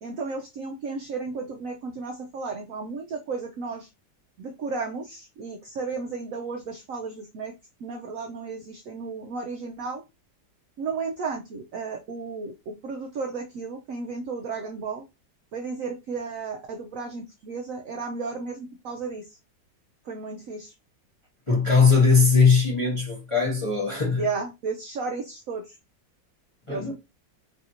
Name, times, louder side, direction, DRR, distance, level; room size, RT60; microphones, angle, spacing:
voice 1, 0.0-3.9 4.4-7.5 7.8-10.0 10.8-15.0 15.5-19.3 20.1-20.7 24.2-25.7 26.7-26.9, right 4 dB, 85° right, 0.7 m, -33 dB
voice 2, 21.5-24.3 26.7-26.9, left 5 dB, 30° left, 0.6 m, -20 dB
3.3 x 2.5 x 2.7 m
omnidirectional pair, 2.0 m